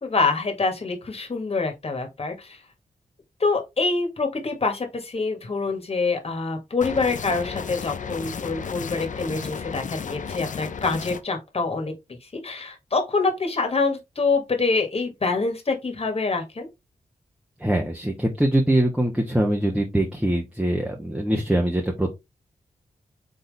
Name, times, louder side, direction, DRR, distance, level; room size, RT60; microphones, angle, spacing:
voice 1, 0.0-2.6 3.4-11.9 12.2-16.7, left 4 dB, 45° left, 1.6 m, -26 dB
sound 1, 6.8-11.2, left 6 dB, 65° left, 0.7 m, -33 dB
voice 2, 17.6-22.1, right 1 dB, 10° right, 1.2 m, -23 dB
4.2 x 3.7 x 3.4 m
cardioid pair, 60°, 14 cm